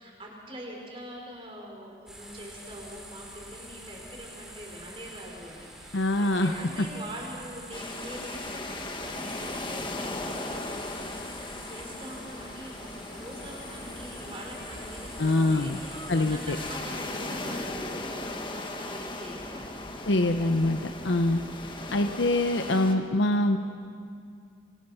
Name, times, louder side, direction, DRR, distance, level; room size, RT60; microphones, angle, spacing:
voice 1, 0.0-11.3 11.6-19.8 20.9-21.2, equal, 30° right, -1 dB, 4.9 m, -43 dB
sound 1, 2.1-16.8, right 1 dB, 5° right, 3.2 m, -47 dB
voice 2, 5.9-6.5 15.2-15.8 16.1-16.6 20.1-21.4 21.9-23.6, left 1 dB, 85° left, 6 dB, 0.9 m, -24 dB
sound 2, 7.7-23.0, left 2 dB, 25° left, 1.6 m, -38 dB
26.5 x 25.5 x 5.8 m, 2.3 s
head